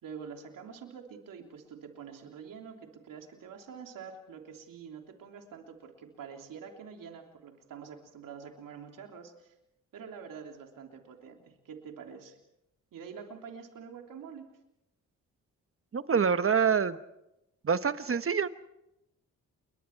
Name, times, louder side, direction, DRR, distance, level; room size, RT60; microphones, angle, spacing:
voice 1, 0.0-9.5 9.9-12.4 12.9-14.4, right 6 dB, 75° right, 3 dB, 3.3 m, -46 dB
voice 2, 15.9-17.0 17.6-18.5, right 6 dB, 40° right, 12 dB, 1.2 m, -26 dB
29.0 x 22.5 x 4.7 m, 0.86 s
cardioid pair, 60°, 33 cm